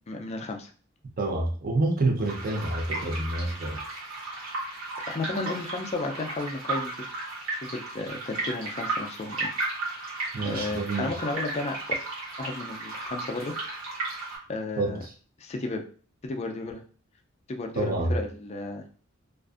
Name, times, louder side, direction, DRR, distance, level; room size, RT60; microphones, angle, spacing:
voice 1, 0.1-0.7 5.1-9.5 10.4-11.8 12.4-13.5 14.5-15.0 15.4-15.8 16.2-16.8 17.5-18.8, left 2 dB, 30° left, 3 dB, 0.3 m, -33 dB
voice 2, 1.2-3.8 10.3-11.2 14.8-15.1 17.7-18.2, right 2 dB, 45° right, 1 dB, 0.6 m, -28 dB
sound 1, 2.2-14.4, right 3 dB, 80° right, 1.2 m, -34 dB
2.4 x 2.4 x 2.4 m, 0.42 s
head